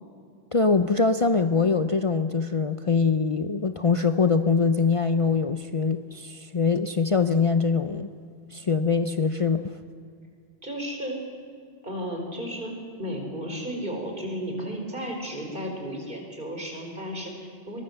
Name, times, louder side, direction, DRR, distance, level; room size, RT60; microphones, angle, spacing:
voice 1, 0.5-8.1 8.5-9.7, left 4 dB, 35° left, 8 dB, 0.7 m, -23 dB
voice 2, 10.6-11.2 11.8-12.7 13.0-17.8, equal, 50° right, 2 dB, 4.9 m, -33 dB
22.5 x 20.5 x 8.0 m, 2.2 s
omnidirectional pair, 1.1 m